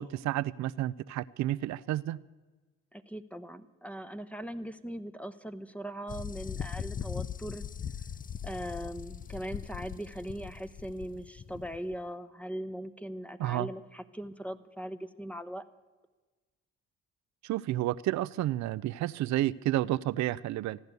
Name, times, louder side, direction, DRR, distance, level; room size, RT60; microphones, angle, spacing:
voice 1, 0.0-2.2 13.4-13.7 17.4-20.8, right 14 dB, 60° right, 16 dB, 0.5 m, -31 dB
voice 2, 2.9-7.7 8.4-15.7, right 1 dB, 5° left, 12 dB, 0.9 m, -40 dB
sound 1, 6.1-11.9, left 8 dB, 25° left, 0.5 m, -40 dB
15.0 x 10.5 x 8.1 m, 1.3 s
supercardioid pair, 60°, 31 cm